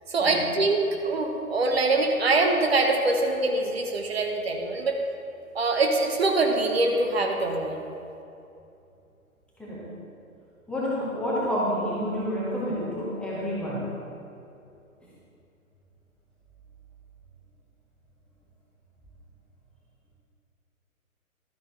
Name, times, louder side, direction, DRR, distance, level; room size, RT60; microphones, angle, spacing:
voice 1, 0.1-5.0 5.5-7.8, right 2 dB, 45° right, 3 dB, 1.0 m, -24 dB
voice 2, 10.7-13.9, equal, ahead, -8 dB, 1.0 m, -29 dB
12.0 x 9.9 x 3.3 m, 2.7 s
figure-of-eight pair, 130°, 43 cm